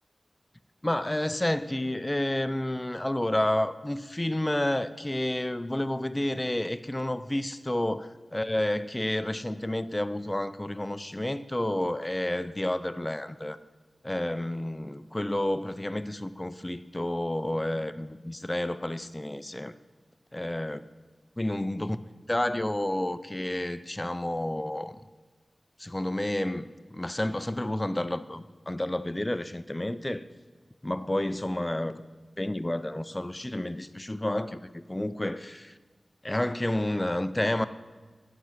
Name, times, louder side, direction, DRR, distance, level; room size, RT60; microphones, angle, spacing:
voice 1, 0.8-13.6 14.0-19.7 20.3-20.8 21.4-22.0 22.3-25.0 25.8-30.2 30.8-32.0 32.4-35.8 36.2-37.7, left 1 dB, 20° left, 12 dB, 0.3 m, -30 dB
12.0 x 6.0 x 5.7 m, 1.3 s
wide cardioid pair, 75°, 0 cm